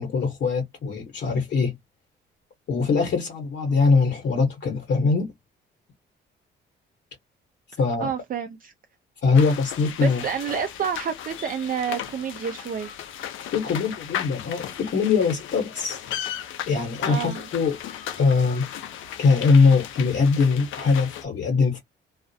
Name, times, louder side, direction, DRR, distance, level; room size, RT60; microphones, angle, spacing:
voice 1, 0.0-1.8 2.7-5.3 7.8-8.1 9.2-10.2 13.5-16.0 16.7-17.8 18.2-18.6 19.2-21.8, left 4 dB, 65° left, 1.1 m, -22 dB
voice 2, 8.0-8.7 10.0-12.9 17.1-17.4, right 7 dB, 45° right, 0.5 m, -29 dB
sound 1, 9.3-21.2, left 10 dB, 80° left, 0.6 m, -36 dB
2.4 x 2.0 x 2.7 m
cardioid pair, 90°, 20 cm